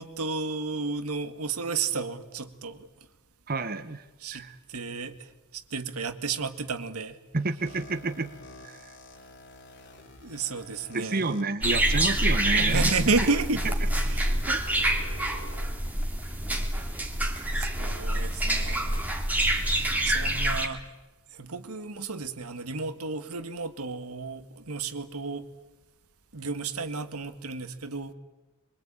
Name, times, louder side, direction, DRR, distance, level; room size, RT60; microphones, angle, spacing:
voice 1, 0.0-2.9 4.2-7.2 10.2-11.3 12.5-13.6 14.0-14.5 17.5-19.0 20.0-20.8 21.3-25.5 26.3-28.1, right 4 dB, 85° right, 1.8 m, -32 dB
voice 2, 3.5-4.0 4.3-4.6 7.3-8.3 8.6-8.9 10.9-13.1 14.5-14.6, right 3 dB, 45° right, 1.0 m, -30 dB
sound 1, 7.6-11.4 12.1-12.2 13.1-15.6, left 1 dB, 55° left, 3.2 m, -48 dB
sound 2, 11.6-20.7, right 1 dB, 5° right, 2.5 m, -26 dB
24.0 x 23.5 x 8.8 m
head